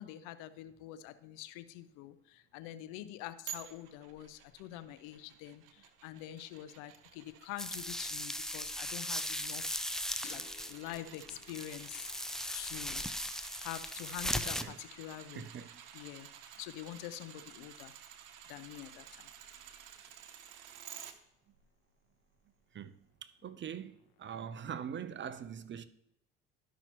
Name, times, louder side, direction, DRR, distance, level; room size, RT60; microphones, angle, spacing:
voice 1, 0.0-9.8 10.3-10.4 10.7-12.1 12.5-13.0 13.6-15.5 15.9-16.3 16.6-17.9 18.5-19.3, left 13 dB, 75° left, 0.7 m, -46 dB
sound 1, 3.5-21.1 21.6-21.7, right 9 dB, 75° right, 1.0 m, -52 dB
sound 2, 7.6-14.6, left 1 dB, ahead, 0.5 m, -38 dB
sound 3, 10.2-13.6, left 8 dB, 55° left, 1.6 m, -59 dB
voice 2, 15.3-15.8 22.7-22.9 23.2-25.8, right 8 dB, 35° right, 0.7 m, -43 dB
12.5 x 5.7 x 3.0 m
supercardioid pair, 80°, 32 cm